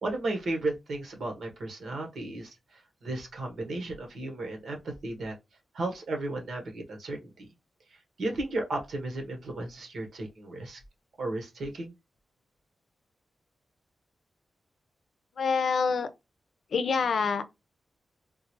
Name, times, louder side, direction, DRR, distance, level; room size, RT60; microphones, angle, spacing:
voice 1, 0.0-5.3 5.7-7.5 7.9-10.8 11.2-11.9, right 2 dB, 75° right, 1.2 m, -34 dB
voice 2, 15.4-16.1 16.7-17.4, left 5 dB, 65° left, 0.5 m, -26 dB
3.8 x 2.4 x 3.0 m
wide cardioid pair, 135°, 0 cm